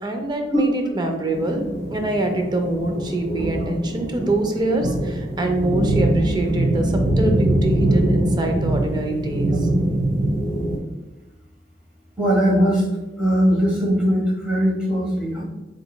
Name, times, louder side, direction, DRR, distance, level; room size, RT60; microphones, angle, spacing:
voice 1, 0.0-1.6 1.9-9.7, right 1 dB, 25° right, 4 dB, 0.4 m, -24 dB
sound 1, 1.3-10.8, right 1 dB, 90° right, 1.3 m, -22 dB
voice 2, 12.2-12.8 13.2-15.4, equal, 5° right, -7 dB, 1.1 m, -19 dB
3.8 x 3.4 x 2.2 m, 1.1 s
head